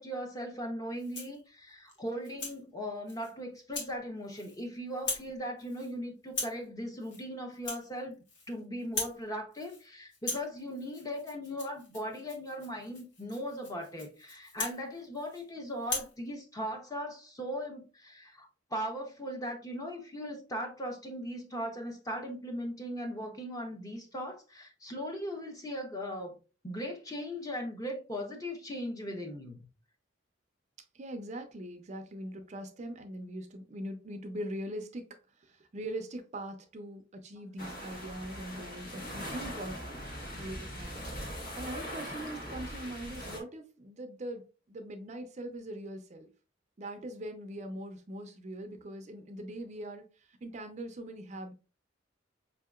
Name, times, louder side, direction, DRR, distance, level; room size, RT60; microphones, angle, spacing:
voice 1, 0.0-8.1 8.5-26.3 26.6-29.6, equal, 20° left, 0.8 m, -38 dB
Rattle (instrument), 0.9-1.4 1.9-2.6 3.1-3.3 3.7-3.9 4.2-4.7 4.9-5.3 5.6-5.9 6.3-6.6 7.0-7.2 7.5-8.5 8.8-9.2 9.5-9.9 10.1-15.4 15.8-16.1, left 2 dB, 75° left, 1.2 m, -40 dB
voice 2, 30.9-41.0 41.6-46.3 46.8-51.5, right 1 dB, 40° right, 0.5 m, -42 dB
sound 1, 37.6-43.4, equal, 55° left, 1.2 m, -41 dB
4.9 x 2.8 x 2.3 m
head